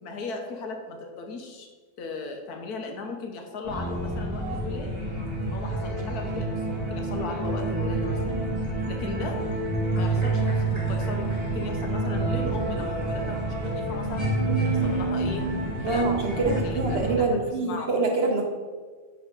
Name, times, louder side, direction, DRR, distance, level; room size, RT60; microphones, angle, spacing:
voice 1, 0.0-1.7 2.0-5.0 5.5-8.4 8.9-9.4 9.9-14.2 14.6-15.5 15.8-17.9, left 3 dB, 90° left, 3 dB, 1.4 m, -37 dB
sound 1, 3.6-17.2, right 2 dB, 20° right, 1.7 m, -28 dB
voice 2, 15.8-18.4, right 3 dB, 50° right, 2 dB, 0.9 m, -25 dB
9.6 x 3.6 x 3.7 m, 1.4 s
omnidirectional pair, 1.6 m